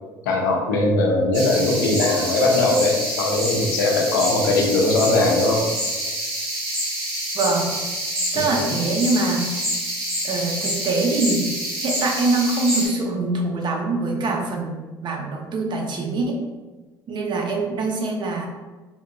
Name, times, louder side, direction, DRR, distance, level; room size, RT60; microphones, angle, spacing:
voice 1, 0.2-5.7 8.3-8.9, left 2 dB, 90° left, 0 dB, 0.6 m, -20 dB
sound 1, 1.3-12.9, right 1 dB, 80° right, 1.4 m, -27 dB
voice 2, 7.3-7.7 8.3-9.4 10.2-11.5 11.8-16.4 17.1-18.5, right 3 dB, 50° right, 2 dB, 0.7 m, -24 dB
3.4 x 2.6 x 2.3 m, 1.3 s
hypercardioid pair, 70°, 10 cm